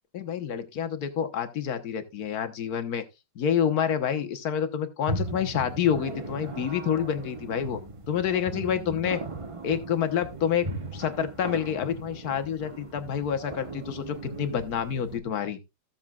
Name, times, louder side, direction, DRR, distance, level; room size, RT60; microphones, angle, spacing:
voice 1, 0.1-3.0 3.3-7.8 8.1-9.2 9.6-10.7 10.9-15.6, left 8 dB, 55° left, 1.4 m, -28 dB
sound 1, 5.1-15.2, right 2 dB, 30° right, 0.6 m, -38 dB
15.5 x 7.2 x 2.4 m
omnidirectional pair, 2.2 m